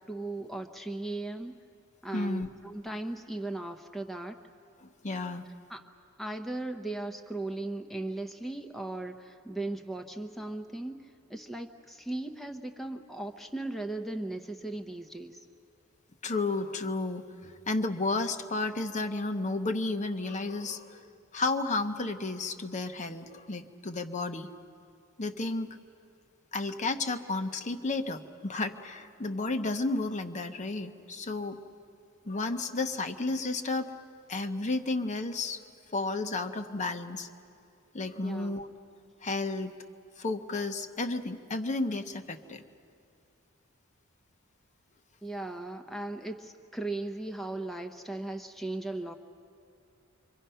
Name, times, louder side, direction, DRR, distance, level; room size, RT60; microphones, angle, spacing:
voice 1, 0.1-1.5 2.0-4.4 5.7-5.8 6.2-11.0 11.3-15.4 38.2-38.6 45.2-49.1, right 2 dB, ahead, 5 dB, 0.8 m, -37 dB
voice 2, 2.1-2.5 4.8-5.5 16.2-24.5 25.2-25.7 26.5-31.6 32.2-33.9 34.3-35.6 35.9-37.3 37.9-38.7 39.2-39.7 40.2-42.6, left 3 dB, 35° left, 6 dB, 0.9 m, -32 dB
27.5 x 24.5 x 5.7 m, 2.6 s
head